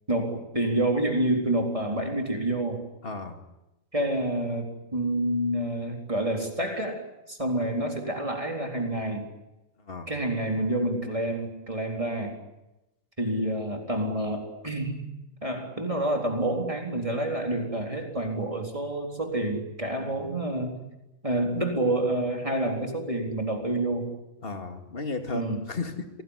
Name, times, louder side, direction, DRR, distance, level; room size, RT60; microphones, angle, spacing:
voice 1, 0.1-2.8 3.9-9.3 10.1-12.4 13.2-15.0 15.4-20.8 21.2-24.1 25.3-25.6, right 1 dB, 25° right, 2 dB, 4.1 m, -28 dB
voice 2, 3.0-3.4 7.6-7.7 9.8-10.1 19.9-20.1 24.4-26.1, left 3 dB, 45° left, 5 dB, 2.6 m, -34 dB
27.0 x 19.5 x 9.9 m, 0.96 s
omnidirectional pair, 1.4 m